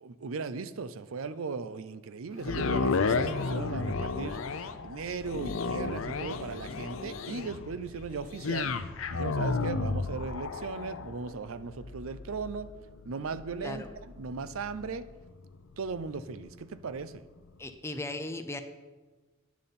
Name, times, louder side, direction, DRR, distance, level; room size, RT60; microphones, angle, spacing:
voice 1, 0.0-8.8 9.1-12.7 13.0-13.9 14.2-15.1 15.8-17.2, right 4 dB, 85° right, 13 dB, 0.5 m, -37 dB
sound 1, 2.4-16.6 17.1-17.2, left 4 dB, 80° left, 0.6 m, -33 dB
voice 2, 17.6-18.6, left 2 dB, 15° left, 8 dB, 0.7 m, -37 dB
10.5 x 9.6 x 4.2 m, 1.2 s
head